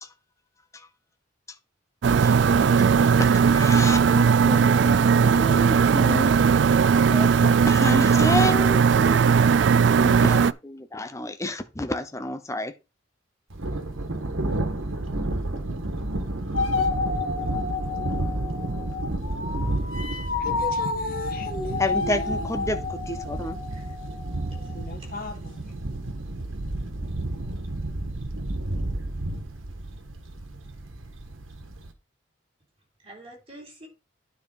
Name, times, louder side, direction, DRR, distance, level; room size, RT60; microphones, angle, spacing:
sound 1, 2.0-10.5, right 6 dB, 65° right, 0.3 m, -18 dB
voice 1, 3.2-6.4 6.7-6.8 7.1-9.3 10.0-12.7 21.8-23.6, left 1 dB, 15° left, 0.8 m, -30 dB
Thunder, 13.5-31.9, right 1 dB, 90° right, 1.5 m, -31 dB
sound 2, 16.5-24.8, left 4 dB, 85° left, 1.7 m, -31 dB
voice 2, 20.4-22.7 24.7-25.6, left 2 dB, 45° left, 1.5 m, -36 dB
voice 3, 24.6-25.3 33.0-33.9, right 1 dB, 30° right, 3.7 m, -47 dB
9.5 x 4.9 x 4.7 m
head